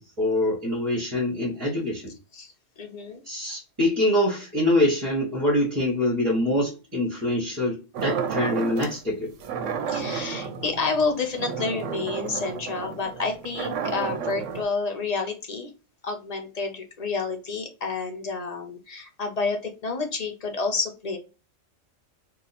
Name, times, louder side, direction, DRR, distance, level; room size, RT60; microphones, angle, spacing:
voice 1, 0.2-2.1 3.2-9.3, left 1 dB, 25° right, -3 dB, 1.0 m, -24 dB
voice 2, 2.3-3.2 9.9-15.7 16.0-21.2, left 4 dB, 40° left, 3 dB, 0.6 m, -29 dB
sound 1, 7.9-9.0 9.4-14.6, right 6 dB, 80° right, 0.9 m, -31 dB
2.8 x 2.3 x 4.0 m, 0.31 s
omnidirectional pair, 1.3 m